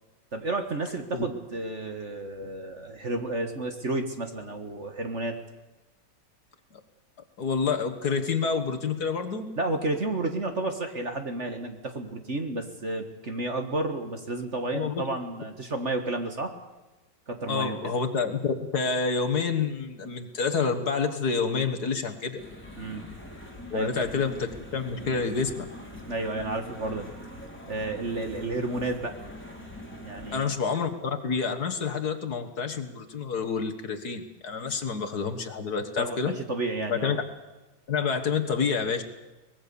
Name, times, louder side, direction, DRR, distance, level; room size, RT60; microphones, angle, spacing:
voice 1, 0.3-5.4 9.6-16.5 17.3-17.9 22.8-23.1 23.7-24.1 26.1-27.1 27.7-29.1 30.0-30.5 34.7-34.8 36.0-37.2, right 2 dB, 40° right, 6 dB, 1.8 m, -31 dB
voice 2, 7.4-9.5 14.7-15.1 17.5-22.4 23.7-25.7 30.3-36.3 36.9-37.2 37.9-39.0, left 5 dB, 55° left, 6 dB, 1.9 m, -28 dB
sound 1, 22.4-30.4, equal, 5° left, 3.8 m, -43 dB
24.0 x 20.0 x 7.0 m, 1.1 s
omnidirectional pair, 2.2 m